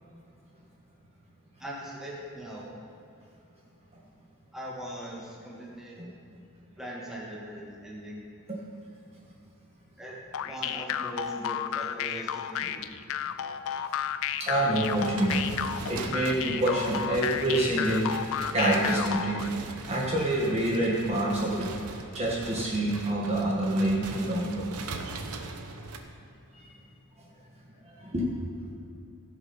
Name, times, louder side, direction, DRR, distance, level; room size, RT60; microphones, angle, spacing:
voice 1, 1.6-2.7 4.5-6.0 6.8-8.2 10.0-10.2 10.4-12.9, right 1 dB, ahead, -5 dB, 2.1 m, -40 dB
sound 1, 10.3-19.5, left 9 dB, 65° left, 0.4 m, -32 dB
voice 2, 14.4-15.5 15.9-18.1 18.5-19.4 19.9-21.7 22.1-24.5 28.1-28.3 28.6-28.7, right 1 dB, 30° right, -5 dB, 1.6 m, -27 dB
sound 2, 14.8-26.0, right 3 dB, 70° right, 1.0 m, -40 dB
16.0 x 6.9 x 5.4 m, 2.7 s
head